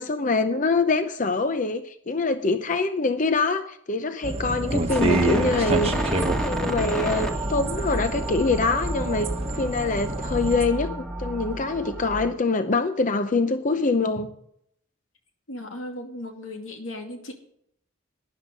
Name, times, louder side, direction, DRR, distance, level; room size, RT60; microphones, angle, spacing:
voice 1, 0.0-14.3, left 3 dB, 40° left, 10 dB, 0.6 m, -25 dB
sound 1, 4.2-10.7, right 2 dB, 30° right, 1.1 m, -28 dB
sound 2, 4.9-12.3, right 1 dB, 5° left, 1.8 m, -31 dB
voice 2, 15.5-17.3, left 1 dB, 85° left, 4 dB, 2.5 m, -36 dB
12.5 x 10.5 x 5.3 m, 0.71 s
head